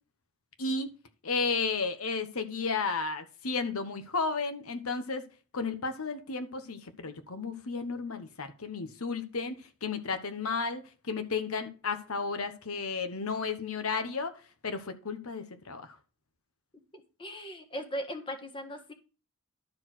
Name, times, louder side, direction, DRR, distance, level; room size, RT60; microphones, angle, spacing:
voice 1, 1.2-5.2 5.5-14.4 14.6-16.0, left 4 dB, 90° left, 1.2 m, -33 dB
voice 2, 16.9-18.9, equal, 25° left, 1.5 m, -38 dB
12.0 x 4.7 x 6.2 m
head